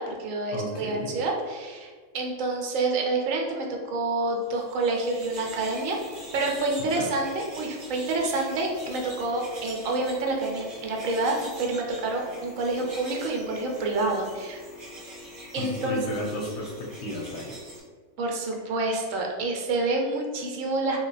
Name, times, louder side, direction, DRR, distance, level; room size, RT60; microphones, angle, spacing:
voice 1, 0.0-6.0 6.3-14.6 15.5-16.0 18.2-21.0, right 2 dB, 75° right, 1 dB, 1.0 m, -28 dB
voice 2, 0.5-1.1 6.9-7.1 15.5-17.5, left 1 dB, 65° left, -1 dB, 0.8 m, -33 dB
sound 1, 4.5-17.8, equal, 40° right, 0.7 m, -43 dB
3.1 x 2.2 x 3.9 m, 1.5 s
omnidirectional pair, 1.4 m